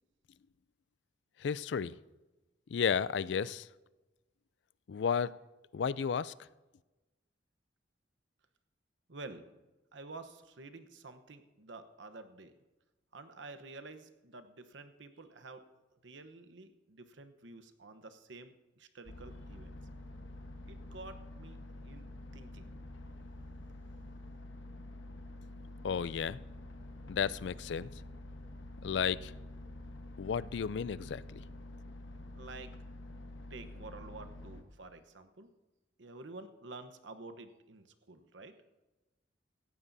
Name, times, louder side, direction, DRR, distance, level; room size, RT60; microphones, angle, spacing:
voice 1, 1.4-2.0 2.7-3.7 4.9-5.3 5.7-6.3 25.8-26.4 27.1-27.9 28.8-29.3 30.2-31.4, left 7 dB, 65° left, 18 dB, 0.4 m, -33 dB
voice 2, 9.1-9.4 9.9-12.5 13.1-15.6 16.0-19.8 20.7-22.1 22.3-22.7 24.0-24.1 32.3-32.7 33.5-35.5 36.0-38.6, right 3 dB, 80° right, 9 dB, 1.0 m, -50 dB
sound 1, 19.1-34.6, left 1 dB, 90° left, 1.3 m, -48 dB
17.0 x 15.0 x 2.7 m, 1.1 s
head